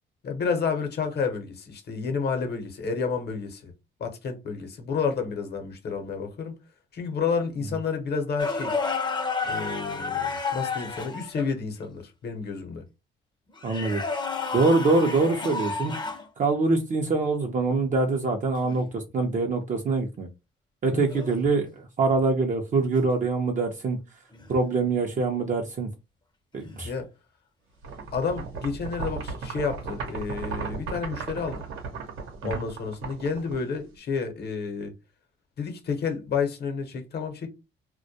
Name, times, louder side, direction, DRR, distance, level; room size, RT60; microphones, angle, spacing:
voice 1, 0.2-3.7 4.0-6.5 6.9-8.7 9.4-12.8 15.8-15.9 20.9-21.0 26.8-27.1 28.1-31.7 32.4-34.9 35.6-37.5, left 5 dB, 55° left, 0.8 m, -30 dB
sound 1, 8.4-11.5 13.6-16.3 18.6-18.8 21.1-21.4 24.3-24.6 26.6-26.9, left 4 dB, 20° left, 0.6 m, -31 dB
voice 2, 13.6-14.0 14.5-15.9 16.4-20.3 20.8-24.0 24.5-25.9 26.5-26.9 32.5-32.6, right 3 dB, 40° right, 0.5 m, -24 dB
sound 2, 27.8-34.0, right 5 dB, 85° right, 0.8 m, -36 dB
2.2 x 2.1 x 2.7 m
cardioid pair, 90°, 20 cm